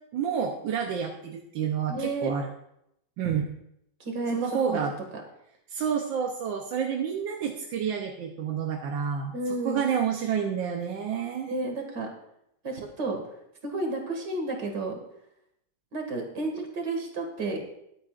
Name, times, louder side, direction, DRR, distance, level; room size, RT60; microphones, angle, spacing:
voice 1, 0.1-2.5 3.2-3.5 4.3-4.9 5.7-9.3 9.6-11.5, right 7 dB, 85° right, 2 dB, 1.6 m, -29 dB
voice 2, 1.9-2.3 3.2-3.4 4.0-4.8 9.3-9.9 11.5-12.1 12.6-13.2 13.6-15.0 15.9-17.6, right 2 dB, 65° right, 3 dB, 2.7 m, -31 dB
21.5 x 8.6 x 2.5 m, 0.79 s
omnidirectional pair, 2.0 m